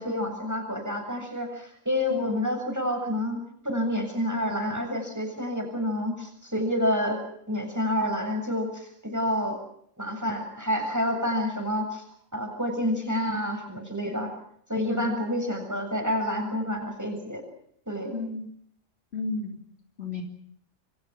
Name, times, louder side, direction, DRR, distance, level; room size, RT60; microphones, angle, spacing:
voice 1, 0.0-9.6 10.0-12.0 12.3-14.3 14.7-17.4 17.9-18.2, left 1 dB, 15° right, 4 dB, 7.5 m, -28 dB
voice 2, 18.1-18.5 19.1-19.6 20.0-20.2, left 4 dB, 55° left, 3 dB, 3.7 m, -32 dB
28.0 x 24.5 x 6.1 m, 0.67 s
omnidirectional pair, 1.3 m